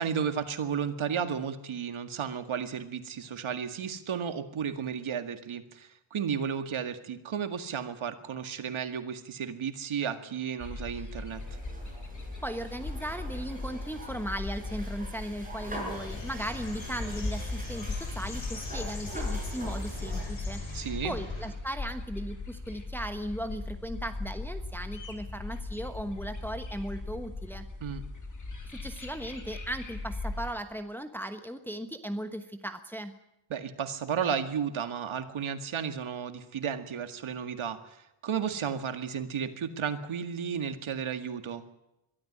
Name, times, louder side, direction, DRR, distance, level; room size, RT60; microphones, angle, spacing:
voice 1, 0.0-11.4 20.7-21.2 27.8-28.0 33.5-41.6, right 7 dB, 75° right, 8 dB, 2.1 m, -33 dB
sound 1, 10.6-30.5, left 3 dB, 35° left, 3.8 m, -38 dB
sound 2, 11.3-20.2, right 1 dB, 15° right, 6.8 m, -44 dB
voice 2, 12.4-27.7 28.6-33.1, equal, 5° left, 7 dB, 1.2 m, -37 dB
sound 3, 15.9-21.5, left 3 dB, 70° left, 7.4 m, -43 dB
22.5 x 13.5 x 9.9 m, 0.88 s
wide cardioid pair, 150°, 49 cm